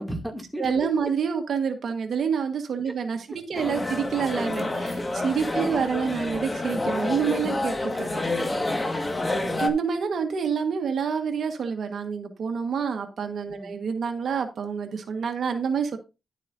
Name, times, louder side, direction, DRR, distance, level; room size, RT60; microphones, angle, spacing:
voice 1, 0.0-0.9 3.5-3.7 5.6-5.9 8.6-9.6 13.5-13.7, equal, ahead, 1 dB, 2.6 m, -36 dB
voice 2, 0.6-8.5 9.6-16.0, right 6 dB, 65° right, 5 dB, 1.6 m, -28 dB
sound 1, 3.5-9.7, left 2 dB, 25° left, 1.8 m, -28 dB
11.5 x 8.1 x 2.7 m, 0.27 s
cardioid pair, 80°, 0 cm